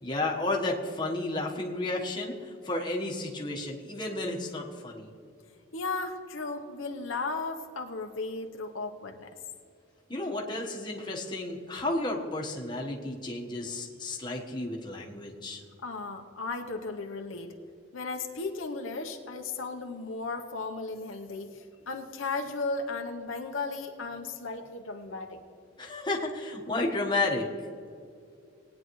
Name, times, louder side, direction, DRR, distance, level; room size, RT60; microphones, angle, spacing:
voice 1, 0.0-5.1 10.1-15.6 25.8-27.5, left 2 dB, 20° left, -2 dB, 1.2 m, -32 dB
voice 2, 5.7-9.3 15.8-17.5 17.9-25.4, left 3 dB, 75° left, 3 dB, 0.9 m, -35 dB
19.5 x 9.4 x 3.1 m, 2.4 s
head